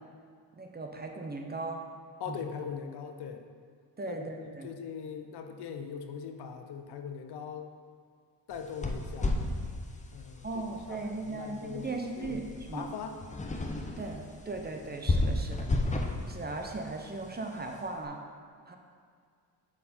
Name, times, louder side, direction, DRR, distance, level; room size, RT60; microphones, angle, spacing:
voice 1, 0.6-1.8 2.3-2.5 4.0-4.7 10.4-12.9 14.0-15.7 16.3-18.2 18.6-18.8, right 3 dB, 25° right, 3 dB, 0.8 m, -38 dB
voice 2, 2.2-3.4 4.1-7.7 8.5-9.4 10.1-10.5 10.9-11.9 12.2-13.2, left 6 dB, 65° left, 6 dB, 0.7 m, -41 dB
sound 1, 8.5-17.9, left 2 dB, 15° left, 0.7 m, -34 dB
7.0 x 4.6 x 4.3 m, 2.1 s
cardioid pair, 70°, 42 cm